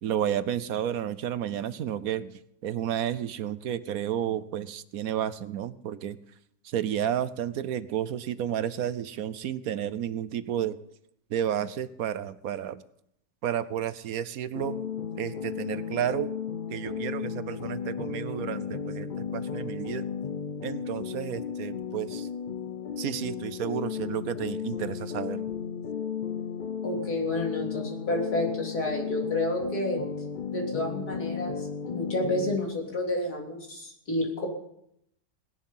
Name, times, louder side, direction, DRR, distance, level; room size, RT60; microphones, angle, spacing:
voice 1, 0.0-6.2 6.6-10.8 11.3-12.8 13.4-14.8 15.2-16.3 16.7-20.0 20.6-22.3 23.0-25.5, right 10 dB, 70° right, 15 dB, 1.1 m, -31 dB
sound 1, 14.5-32.6, left 7 dB, 55° left, 0.5 m, -34 dB
voice 2, 26.8-30.0 30.5-34.5, left 1 dB, 80° left, -1 dB, 3.9 m, -30 dB
18.5 x 11.0 x 5.6 m, 0.76 s
omnidirectional pair, 1.6 m